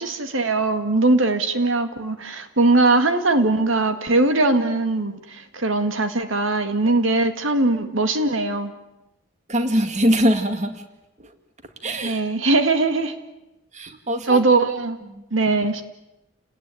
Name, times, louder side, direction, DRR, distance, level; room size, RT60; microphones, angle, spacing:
voice 1, 0.0-8.7 12.0-13.1 14.3-15.0 15.3-15.8, right 2 dB, 85° right, 8 dB, 2.0 m, -20 dB
voice 2, 9.5-10.8 11.2-11.3 11.8-12.2 13.7-14.4 15.1-15.2, equal, 35° right, 8 dB, 2.1 m, -22 dB
29.5 x 19.0 x 9.2 m, 0.94 s
head